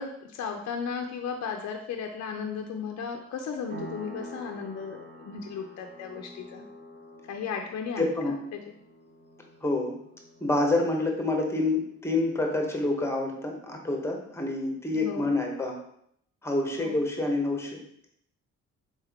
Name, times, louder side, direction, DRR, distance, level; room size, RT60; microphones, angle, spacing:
voice 1, 0.0-6.6 7.3-8.6 14.9-15.3 16.8-17.0, left 6 dB, 60° left, 3 dB, 0.5 m, -35 dB
sound 1, 3.7-12.0, right 1 dB, 35° right, 0.8 m, -47 dB
voice 2, 8.0-8.4 9.6-10.0 10.4-15.8 16.4-17.8, left 2 dB, 10° left, 1 dB, 1.0 m, -27 dB
4.0 x 3.5 x 3.5 m, 0.70 s
cardioid pair, 90°, 30 cm